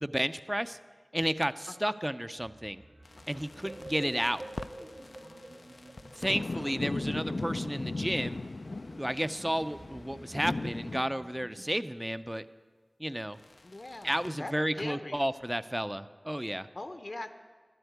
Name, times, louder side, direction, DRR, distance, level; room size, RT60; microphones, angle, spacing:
voice 1, 0.0-0.8 1.1-2.8 3.3-4.4 6.2-8.4 9.0-12.4 13.0-13.4 14.0-16.7, equal, 10° right, 13 dB, 0.5 m, -32 dB
sound 1, 2.4-11.6, right 1 dB, 65° right, 1.2 m, -50 dB
sound 2, 3.0-11.0 13.4-14.3, left 2 dB, 75° left, 0.3 m, -38 dB
voice 2, 5.2-5.6 9.4-9.5 13.6-15.3 16.7-17.3, left 2 dB, 60° left, 8 dB, 0.7 m, -42 dB
11.5 x 8.0 x 9.3 m, 1.5 s
wide cardioid pair, 45°, 0 cm